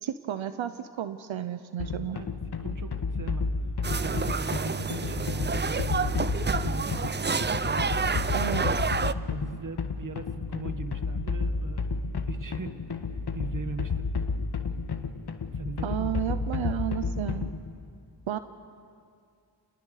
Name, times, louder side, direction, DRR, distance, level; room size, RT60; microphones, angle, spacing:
voice 1, 0.0-2.2 8.3-8.8 15.8-17.5 18.3-18.4, right 11 dB, 90° right, 11 dB, 0.9 m, -32 dB
sound 1, 1.8-17.7, left 4 dB, 55° left, 1.6 m, -31 dB
voice 2, 2.6-3.5 3.9-6.1 6.5-7.1 7.4-8.0 9.3-11.8 12.3-14.1 15.5-16.1, right 4 dB, 45° right, 9 dB, 1.7 m, -40 dB
sound 2, 3.8-9.1, right 5 dB, 25° right, 0.6 m, -29 dB
30.0 x 19.0 x 6.6 m, 2.3 s
cardioid pair, 55°, 45 cm